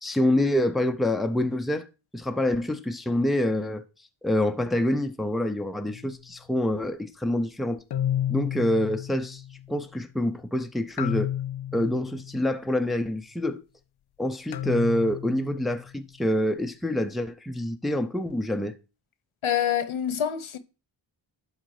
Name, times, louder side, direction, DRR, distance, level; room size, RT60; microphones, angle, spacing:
voice 1, 0.0-1.9 2.1-3.8 4.2-7.8 8.3-9.4 9.7-11.3 11.7-13.6 14.2-18.7, left 1 dB, ahead, 0.6 m, -26 dB
sound 1, 5.9-6.2 7.9-9.8 11.0-12.7 14.5-16.0, left 11 dB, 55° left, 0.5 m, -32 dB
voice 2, 19.4-20.6, left 9 dB, 80° left, 1.0 m, -26 dB
11.5 x 4.0 x 4.9 m
wide cardioid pair, 105°, 48 cm